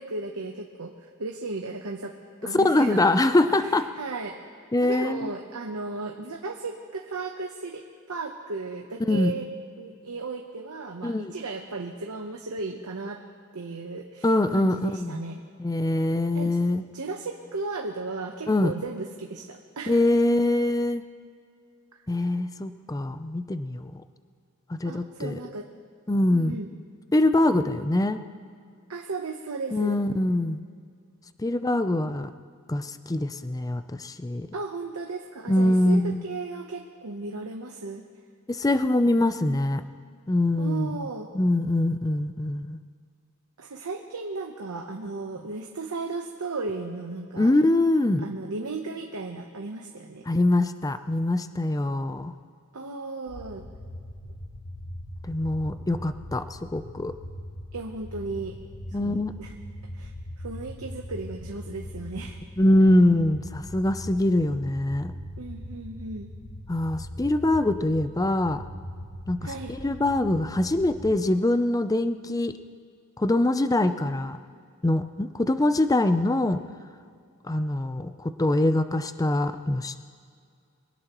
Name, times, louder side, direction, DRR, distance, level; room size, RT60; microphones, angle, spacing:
voice 1, 0.0-2.1 2.4-3.1 3.5-4.4 4.8-9.5 9.8-13.2 13.5-15.4 16.3-16.6 16.9-20.1 22.2-22.3 24.8-25.7 26.3-26.7 28.9-29.9 34.5-38.0 40.6-41.3 43.6-47.5 48.2-50.2 52.7-53.6 57.7-58.6 58.9-59.5 59.9-62.4 65.4-66.3 69.4-69.7, right 3 dB, 90° right, 2 dB, 0.9 m, -35 dB
voice 2, 2.5-3.9 4.7-5.3 9.0-9.3 11.0-11.3 14.2-15.2 15.6-16.8 18.5-18.7 19.9-21.0 22.1-23.9 24.7-25.4 26.1-26.6 27.1-28.2 29.7-30.6 31.4-32.3 32.7-34.5 35.5-36.2 38.5-39.8 40.3-41.1 41.3-42.8 47.4-48.3 50.3-52.3 55.2-57.1 58.9-59.3 62.6-65.1 66.7-68.6 69.3-69.4 69.7-72.5 73.2-74.4 74.8-76.6 77.4-80.0, left 1 dB, 15° left, 10 dB, 0.5 m, -23 dB
sound 1, 53.3-71.2, equal, 75° left, 1.4 m, -41 dB
24.0 x 17.5 x 3.1 m, 2.2 s
head